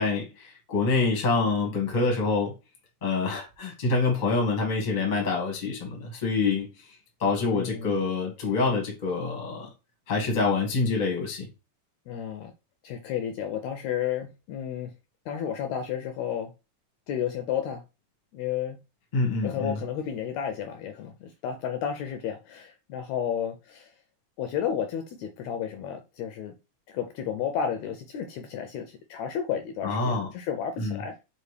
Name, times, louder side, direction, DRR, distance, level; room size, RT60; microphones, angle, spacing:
voice 1, 0.0-2.5 3.0-6.9 7.2-9.7 10.1-11.5 19.1-19.8 29.8-30.3 30.8-31.0, left 3 dB, 40° left, 0.6 m, -26 dB
voice 2, 7.5-8.1 12.1-12.5 12.8-14.9 15.3-16.5 17.1-17.8 18.3-18.8 19.4-23.9 24.4-26.5 26.9-31.1, left 8 dB, 80° left, 1.6 m, -32 dB
5.1 x 2.5 x 3.2 m
omnidirectional pair, 3.5 m